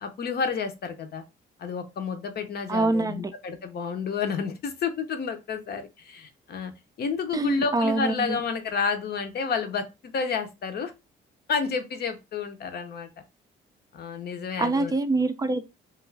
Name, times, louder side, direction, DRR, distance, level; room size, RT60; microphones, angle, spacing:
voice 1, 0.0-1.2 1.6-6.7 7.0-10.9 11.5-13.1 13.9-14.9, left 5 dB, 55° left, 0.6 m, -30 dB
voice 2, 2.7-3.3 7.3-8.4 14.6-15.6, right 2 dB, 20° right, 0.4 m, -25 dB
2.4 x 2.4 x 3.2 m
cardioid pair, 90°, 20 cm